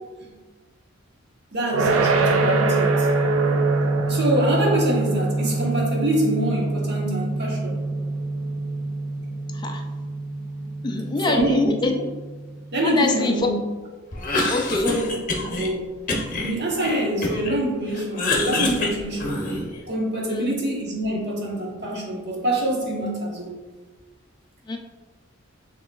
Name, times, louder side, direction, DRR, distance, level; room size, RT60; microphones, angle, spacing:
voice 1, 1.5-3.1 4.1-7.8 11.3-11.7 12.7-13.5 14.7-15.1 15.5-15.9 16.3-19.4 19.9-23.5, right 1 dB, 55° right, -2 dB, 1.1 m, -25 dB
sound 1, 1.7-12.7, right 3 dB, 80° right, 0.4 m, -24 dB
voice 2, 10.8-12.0 12.8-13.5 14.5-15.0 20.3-20.6 24.7-24.8, left 3 dB, 20° left, 3 dB, 0.3 m, -24 dB
Cough, 14.1-15.7 16.1-17.6 17.9-19.8, left 2 dB, 40° left, 0.7 m, -26 dB
6.3 x 3.0 x 2.3 m, 1.3 s
head